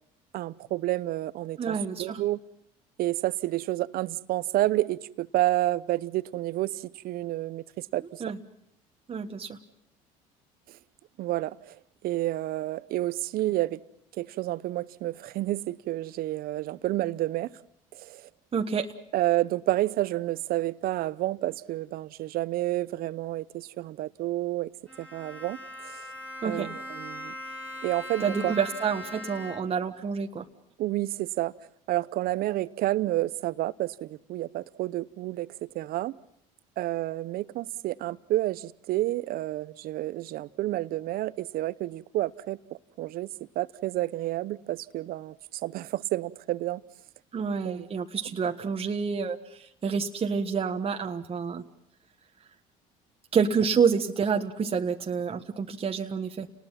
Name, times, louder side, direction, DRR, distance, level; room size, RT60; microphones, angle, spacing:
voice 1, 0.3-2.4 3.0-8.2 11.2-11.8 12.0-13.8 14.2-17.5 17.9-18.3 19.1-24.7 25.0-25.6 25.8-26.0 26.4-27.3 27.8-28.5 30.8-31.5 31.9-35.5 35.7-36.2 36.8-42.6 43.0-46.8 47.6-47.9, right 16 dB, 60° right, 0.8 m, -30 dB
voice 2, 1.6-2.2 8.2-8.4 9.1-9.6 18.5-18.9 26.4-26.7 28.2-30.4 47.3-51.6 53.3-56.5, right 6 dB, 35° right, 1.5 m, -28 dB
Bowed string instrument, 24.9-29.9, left 1 dB, 10° left, 4.9 m, -40 dB
30.0 x 19.5 x 5.8 m
supercardioid pair, 75°, 17 cm